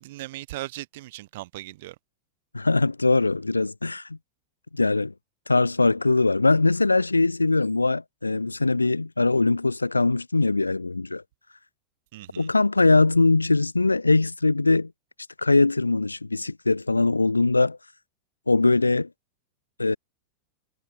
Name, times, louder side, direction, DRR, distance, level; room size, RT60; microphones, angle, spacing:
voice 1, 0.0-2.0 12.1-12.5, right 18 dB, 55° right, 0.7 m, -38 dB
voice 2, 2.5-4.2 4.7-5.1 5.5-11.2 12.4-14.9 15.4-17.8 18.5-19.1 19.8-20.0, left 3 dB, 80° left, 0.5 m, -21 dB
figure-of-eight pair, 90°, 0 cm